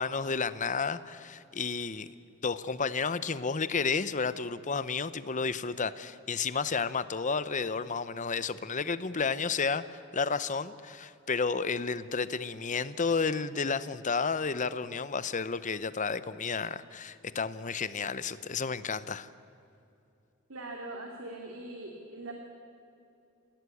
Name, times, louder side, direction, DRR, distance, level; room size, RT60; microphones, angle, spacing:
voice 1, 0.0-2.1 2.4-19.3, left 5 dB, 35° left, 0.8 m, -31 dB
voice 2, 20.5-22.3, right 2 dB, 70° right, 2.7 m, -41 dB
28.5 x 16.5 x 8.5 m
head